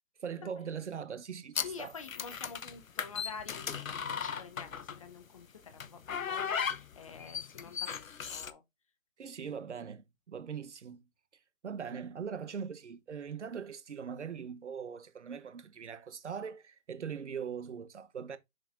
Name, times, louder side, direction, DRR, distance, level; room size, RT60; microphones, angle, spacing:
voice 1, 0.2-2.0 9.2-11.0 11.6-18.4, right 7 dB, 55° right, 1.1 m, -41 dB
sound 1, 1.5-5.1 5.8-8.5, left 7 dB, 75° left, 0.9 m, -37 dB
voice 2, 1.6-8.6, left 5 dB, 25° left, 0.8 m, -48 dB
6.6 x 6.3 x 2.4 m
figure-of-eight pair, 150°, 41 cm